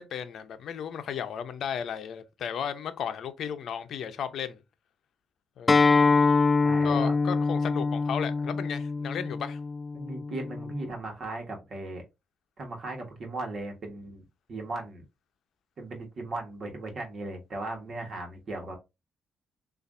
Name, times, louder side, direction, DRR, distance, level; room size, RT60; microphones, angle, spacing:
voice 1, 0.0-4.6 5.6-6.1 6.8-9.6, left 8 dB, 65° left, 0.6 m, -34 dB
Acoustic guitar, 5.7-10.9, left 4 dB, 25° left, 0.4 m, -25 dB
voice 2, 6.6-7.1 9.9-12.0 12.6-15.0 15.8-18.8, right 2 dB, 50° right, 1.4 m, -37 dB
6.7 x 2.6 x 2.6 m
cardioid pair, 90°, 0 cm